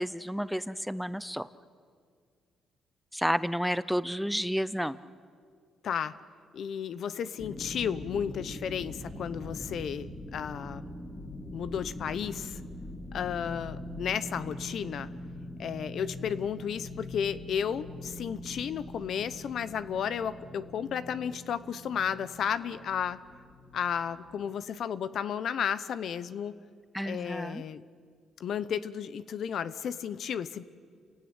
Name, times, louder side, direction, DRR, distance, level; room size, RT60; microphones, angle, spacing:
voice 1, 0.0-1.5 3.1-5.0 26.9-27.6, equal, ahead, 15 dB, 0.7 m, -31 dB
voice 2, 5.8-6.1 6.5-10.9 11.5-12.6 13.1-15.1 15.6-23.2 23.7-26.6 27.0-27.8 28.4-30.6, left 8 dB, 65° left, 14 dB, 0.9 m, -33 dB
sound 1, 7.4-24.5, left 1 dB, 25° left, 3.5 m, -43 dB
29.0 x 17.0 x 8.8 m, 2.1 s
cardioid pair, 90°, 0 cm